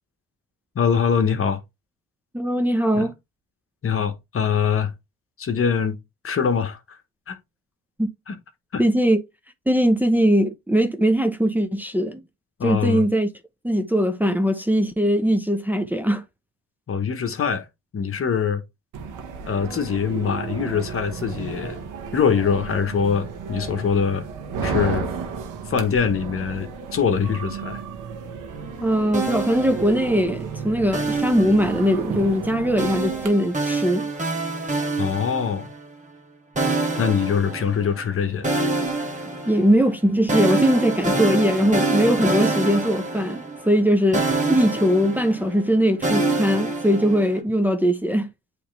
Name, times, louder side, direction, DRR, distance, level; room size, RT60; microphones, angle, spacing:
voice 1, 0.7-1.6 2.9-3.1 3.8-4.9 5.4-6.0 6.2-7.0 7.3-7.4 8.3-8.4 8.7-8.8 12.6-13.1 16.9-17.6 17.9-18.6 19.5-21.8 22.1-24.2 24.6-25.1 25.7-27.8 35.0-35.7 37.0-38.5, left 6 dB, 45° left, 1.2 m, -23 dB
voice 2, 2.3-3.1 8.0-8.1 8.8-9.2 9.7-12.2 12.6-13.3 13.6-16.2 28.8-34.1 39.5-44.2 44.5-48.3, equal, 5° right, 0.9 m, -20 dB
sound 1, 18.9-33.3, right 5 dB, 85° right, 1.4 m, -33 dB
sound 2, 29.1-30.4 30.9-32.1 32.8-35.9 36.6-38.1 38.4-43.9 44.1-47.4, right 3 dB, 25° right, 1.9 m, -26 dB
8.4 x 3.4 x 3.3 m
cardioid pair, 90°, 30 cm